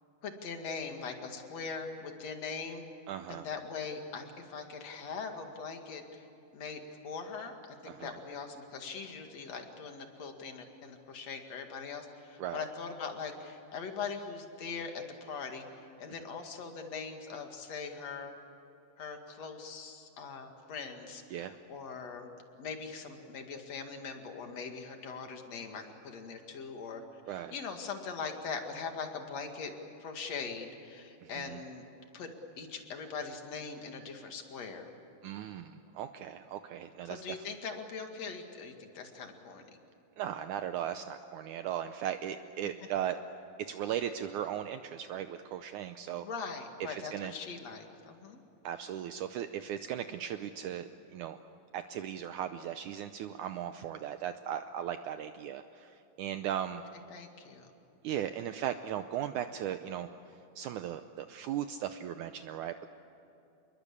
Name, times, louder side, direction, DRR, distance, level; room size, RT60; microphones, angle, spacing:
voice 1, 0.2-2.8 3.3-6.2 6.5-7.5 7.8-18.3 19.0-22.3 22.6-27.2 27.5-29.7 30.0-31.8 32.1-34.9 37.1-39.7 46.2-48.4 57.1-57.7, left 5 dB, 50° left, 4 dB, 3.0 m, -41 dB
voice 2, 3.1-3.5 7.9-8.1 12.4-12.7 21.3-21.6 27.3-27.5 31.2-31.6 35.2-37.4 40.2-43.2 43.6-46.3 46.8-47.3 48.6-51.4 51.7-56.8 58.0-60.1 60.6-62.9, right 10 dB, 85° right, 8 dB, 1.7 m, -37 dB
28.5 x 22.0 x 8.6 m, 2.8 s
omnidirectional pair, 4.4 m